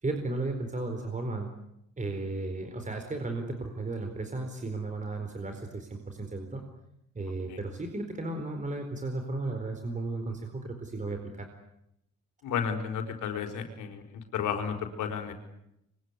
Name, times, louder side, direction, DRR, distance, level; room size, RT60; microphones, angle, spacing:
voice 1, 0.0-1.5 2.0-6.6 7.1-11.5, right 2 dB, 25° right, 5 dB, 4.4 m, -34 dB
voice 2, 12.4-14.0 14.3-15.3, left 7 dB, 85° left, 5 dB, 4.7 m, -32 dB
26.0 x 23.5 x 9.8 m, 0.81 s
cardioid pair, 90°, 30 cm